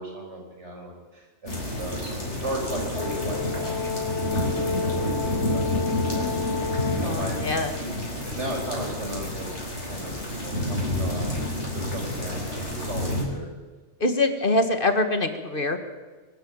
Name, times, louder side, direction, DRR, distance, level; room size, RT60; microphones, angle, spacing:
voice 1, 0.0-6.3 6.9-7.4 7.8-9.6 9.9-13.5, right 1 dB, 80° right, 0 dB, 5.7 m, -36 dB
sound 1, 1.5-13.2, left 1 dB, 85° left, 5.2 m, -29 dB
Brass instrument, 2.9-7.2, left 5 dB, 70° left, 1.1 m, -30 dB
voice 2, 7.0-7.7 14.0-15.8, left 2 dB, 50° left, 8 dB, 1.8 m, -24 dB
23.5 x 12.5 x 8.8 m, 1.3 s
omnidirectional pair, 1.2 m